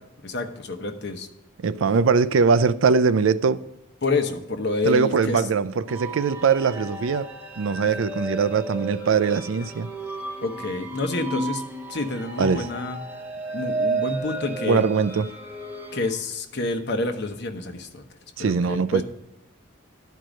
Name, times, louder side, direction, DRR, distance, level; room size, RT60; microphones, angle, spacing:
voice 1, 0.2-1.3 4.0-5.5 7.8-7.9 10.4-11.6 11.9-13.0 13.5-14.8 15.9-18.0 18.4-19.0, left 3 dB, 55° left, 0.9 m, -28 dB
voice 2, 1.6-3.6 4.8-7.3 7.6-9.9 12.4-12.7 14.6-15.3 18.4-19.0, right 5 dB, 80° right, 0.4 m, -21 dB
sound 1, 5.9-16.1, right 2 dB, 10° right, 1.0 m, -33 dB
11.5 x 4.6 x 5.1 m
head